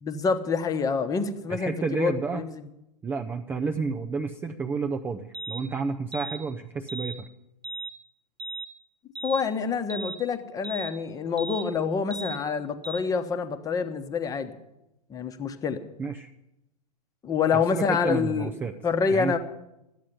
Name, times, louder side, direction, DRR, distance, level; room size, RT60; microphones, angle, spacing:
voice 1, 0.0-2.5 9.2-14.6 15.1-15.8 17.2-18.5 18.8-19.4, left 5 dB, 15° left, 9 dB, 1.0 m, -27 dB
voice 2, 1.5-2.4 3.0-7.3 16.0-16.3 17.5-18.7 19.1-19.4, right 4 dB, 10° right, 7 dB, 0.4 m, -30 dB
sound 1, 5.3-5.6 6.1-6.4 6.9-7.2 7.6-7.9 8.4-8.7 9.2-9.4 9.9-10.2 10.6-10.9 11.4-11.7 12.1-12.4 12.8-13.0, right 3 dB, 70° right, 1.4 m, -36 dB
13.0 x 8.5 x 9.9 m, 0.90 s
figure-of-eight pair, 105°, 21 cm